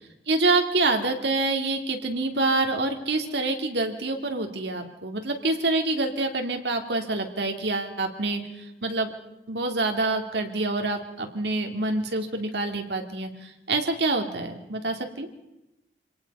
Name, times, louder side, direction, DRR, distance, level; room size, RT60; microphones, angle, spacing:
voice 1, 0.3-8.4 8.8-9.1 9.5-15.3, right 2 dB, 75° right, 4 dB, 2.5 m, -26 dB
26.0 x 18.5 x 5.5 m, 0.94 s
head